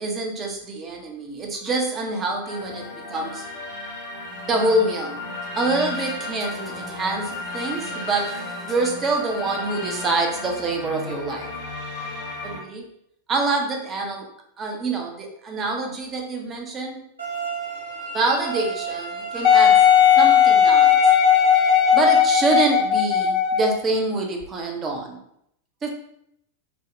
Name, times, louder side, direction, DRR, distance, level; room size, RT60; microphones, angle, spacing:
voice 1, 0.0-3.4 4.5-5.2 5.5-11.5 12.4-12.9 13.3-14.3 14.6-17.0 18.1-19.9 20.2-21.0 21.9-25.2 25.8-25.9, right 3 dB, 25° right, 2 dB, 0.6 m, -26 dB
sound 1, 2.4-12.6, left 2 dB, 70° left, 0.9 m, -34 dB
sound 2, 17.2-22.2, right 4 dB, 80° right, 0.7 m, -32 dB
Wind instrument woodwind instrument, 19.4-23.8 24.4-24.5, left 9 dB, 40° left, 0.6 m, -16 dB
3.4 x 2.1 x 2.5 m, 0.74 s
figure-of-eight pair, 90°, 0 cm